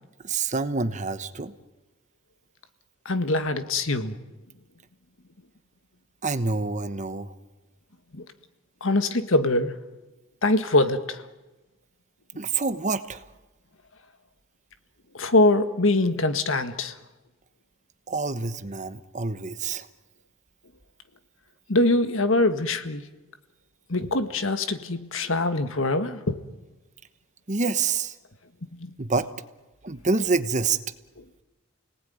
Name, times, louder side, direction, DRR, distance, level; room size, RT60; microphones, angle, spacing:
voice 1, 0.2-1.5 6.2-7.3 12.4-13.2 18.1-19.9 27.5-28.1 29.0-29.3 29.8-30.8, right 4 dB, 35° right, 11 dB, 1.1 m, -27 dB
voice 2, 3.0-4.1 8.1-8.2 8.8-9.7 10.4-11.2 15.1-16.9 21.7-23.0 23.9-26.4 28.7-28.9, left 2 dB, 65° left, 9 dB, 1.7 m, -23 dB
29.5 x 19.0 x 9.5 m, 1.1 s
head